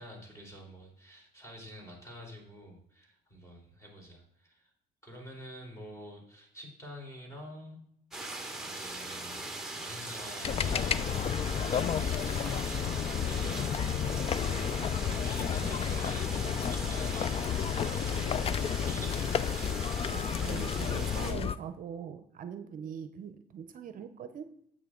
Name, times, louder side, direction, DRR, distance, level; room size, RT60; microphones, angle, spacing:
voice 1, 0.0-4.7 5.0-7.8 8.6-9.5 9.7-18.5 18.9-19.8, equal, 15° left, 0 dB, 3.6 m, -48 dB
sound 1, 8.1-21.3, right 2 dB, 5° right, 1.5 m, -40 dB
sound 2, 10.4-21.6, left 8 dB, 35° left, 0.4 m, -31 dB
voice 2, 20.1-24.5, right 7 dB, 50° right, 10 dB, 0.7 m, -42 dB
9.3 x 8.1 x 3.8 m, 0.73 s
cardioid pair, 110°, 17 cm